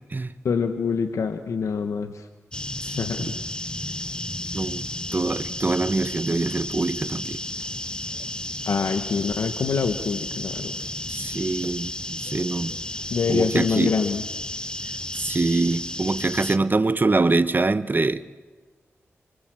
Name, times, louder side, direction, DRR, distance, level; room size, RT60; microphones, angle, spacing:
voice 1, 0.4-2.1 3.0-3.3 8.6-10.7 13.1-14.2, left 5 dB, 80° left, 1.1 m, -25 dB
sound 1, 2.5-16.6, left 1 dB, 15° left, 1.2 m, -32 dB
voice 2, 2.9-3.4 3.8-3.9 4.5-4.9 5.1-7.4 11.1-12.8 13.3-14.0 15.1-18.2, right 3 dB, 40° right, 1.1 m, -24 dB
25.0 x 23.5 x 7.5 m
cardioid pair, 45°, 5 cm